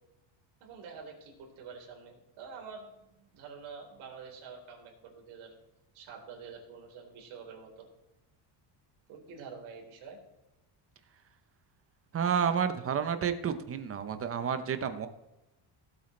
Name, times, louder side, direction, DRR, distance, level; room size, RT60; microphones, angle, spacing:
voice 1, 0.6-5.5 5.9-7.8 9.1-10.2, right 5 dB, 75° right, 0 dB, 4.1 m, -47 dB
voice 2, 12.1-15.1, right 7 dB, 30° right, 10 dB, 0.8 m, -30 dB
17.0 x 8.3 x 3.2 m, 0.97 s
cardioid pair, 150°, 49 cm